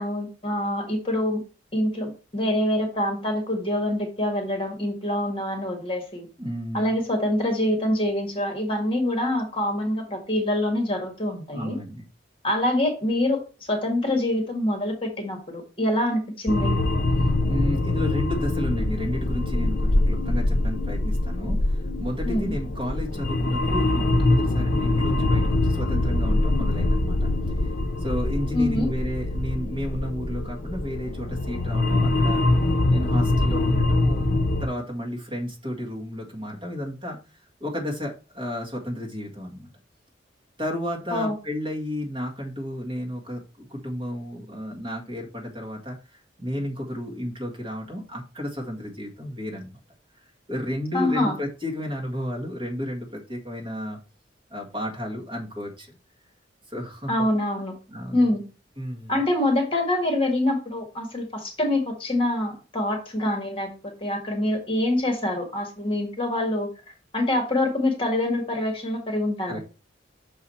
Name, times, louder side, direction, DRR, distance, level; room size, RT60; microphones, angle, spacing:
voice 1, 0.0-1.4 1.7-6.3 6.7-11.7 12.4-13.4 13.7-16.7 22.2-22.5 28.5-28.9 41.1-41.4 50.9-51.3 57.1-57.7 58.1-58.4 59.1-66.7 67.1-69.6, left 1 dB, 30° left, 3 dB, 1.6 m, -25 dB
voice 2, 6.4-6.9 11.5-12.0 17.5-27.2 27.6-27.7 28.0-32.4 32.9-37.2 37.6-39.7 40.6-46.0 46.4-49.7 50.5-54.0 54.5-55.9 56.7-57.3 57.9-58.3 58.8-59.2 69.5-69.6, equal, 30° right, -1 dB, 1.8 m, -32 dB
sound 1, 16.5-34.7, left 2 dB, 50° left, 0.7 m, -23 dB
6.4 x 4.8 x 4.3 m, 0.33 s
head